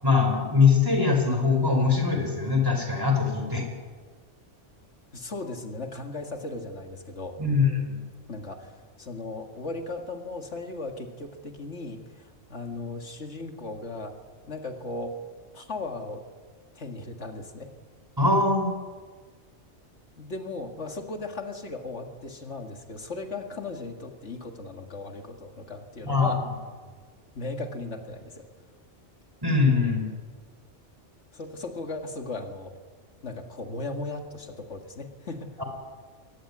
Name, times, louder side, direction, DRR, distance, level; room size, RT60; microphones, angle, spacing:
voice 1, 0.0-3.7 7.4-8.0 18.2-18.7 26.0-26.4 29.4-30.1 35.6-35.7, left 4 dB, 20° right, 3 dB, 4.8 m, -22 dB
voice 2, 5.1-7.4 8.3-14.2 14.5-15.2 15.5-16.2 16.8-17.7 20.2-26.4 27.4-28.5 31.3-32.7 33.2-35.5, left 2 dB, 70° left, 4 dB, 2.3 m, -37 dB
23.0 x 18.0 x 9.8 m, 1.5 s
omnidirectional pair, 1.2 m